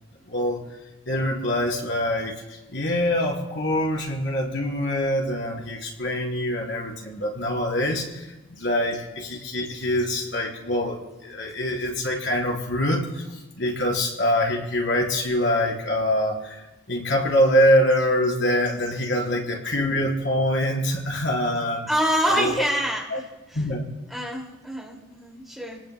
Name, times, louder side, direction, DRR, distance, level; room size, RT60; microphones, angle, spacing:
voice 1, 0.3-0.6 1.1-2.4 2.7-16.6 16.9-21.9 22.4-22.5 23.1-23.2 23.5-23.8, left 1 dB, 65° left, -2 dB, 4.4 m, -24 dB
voice 2, 21.9-23.6 24.1-25.8, equal, ahead, -3 dB, 2.4 m, -26 dB
28.5 x 19.5 x 2.3 m, 1.0 s
head